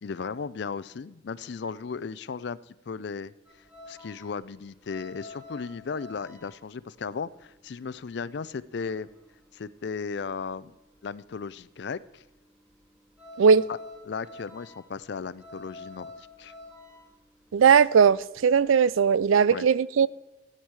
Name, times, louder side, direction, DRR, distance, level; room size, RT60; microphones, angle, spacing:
voice 1, 0.0-3.3 3.9-9.1 9.5-10.8 11.0-12.2 13.7-13.8 14.1-16.5 19.5-19.7, left 5 dB, 60° left, 0.4 m, -36 dB
sound 1, 3.4-10.6 10.8-19.2, left 2 dB, 5° right, 2.9 m, -49 dB
voice 2, 17.5-20.1, right 6 dB, 90° right, 0.4 m, -19 dB
14.5 x 9.0 x 4.7 m
head